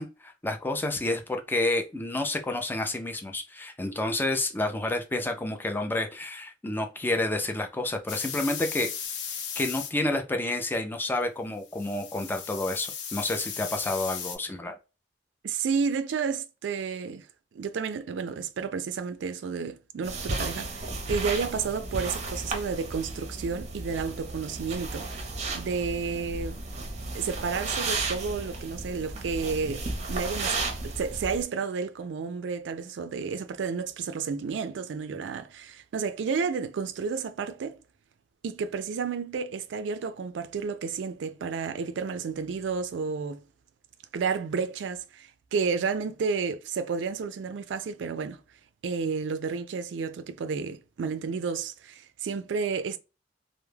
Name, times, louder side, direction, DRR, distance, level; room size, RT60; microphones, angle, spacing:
voice 1, 0.0-8.9 9.6-14.7, left 2 dB, 10° left, 0.4 m, -29 dB
sound 1, 8.1-9.9 11.7-14.4, left 7 dB, 85° left, 0.6 m, -36 dB
voice 2, 15.4-17.3 17.5-25.3 25.5-26.6 27.1-37.8 38.4-43.4 44.1-48.4 48.8-53.0, right 5 dB, 90° right, 0.4 m, -31 dB
Carpet foot steps, 20.0-31.4, right 3 dB, 40° right, 0.6 m, -34 dB
2.2 x 2.0 x 3.1 m
head